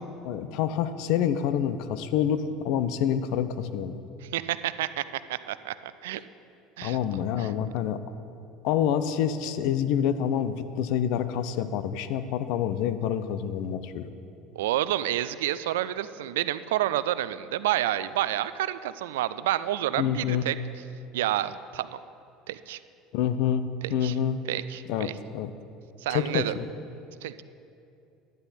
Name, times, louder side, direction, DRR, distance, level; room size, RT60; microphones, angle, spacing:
voice 1, 0.0-4.0 6.8-8.0 8.6-14.1 20.0-20.5 23.1-24.4 24.9-25.5 26.1-26.7, left 9 dB, 65° left, 12 dB, 0.6 m, -27 dB
voice 2, 4.2-6.2 6.8-7.0 7.4-7.5 14.6-20.6 21.1-22.0 22.5-22.8 23.8-24.1 24.5-25.1 26.0-26.5 27.2-27.4, right 13 dB, 80° right, 15 dB, 0.3 m, -29 dB
12.0 x 9.7 x 4.2 m, 2.6 s
hypercardioid pair, 75°, 0 cm